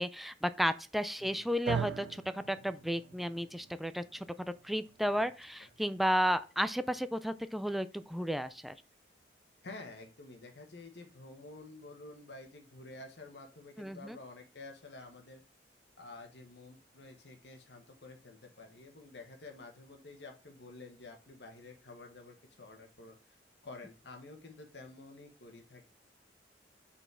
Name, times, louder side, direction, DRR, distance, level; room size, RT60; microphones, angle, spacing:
voice 1, 0.0-4.3 4.6-8.7 13.8-14.2, equal, ahead, 0.4 m, -33 dB
voice 2, 1.2-1.5 5.1-5.3 5.6-5.7 9.6-15.4 16.0-23.4 23.6-25.9, left 2 dB, 70° left, 1.3 m, -50 dB
sound 1, 1.7-9.9, right 7 dB, 90° right, 0.4 m, -45 dB
5.5 x 4.2 x 6.1 m
head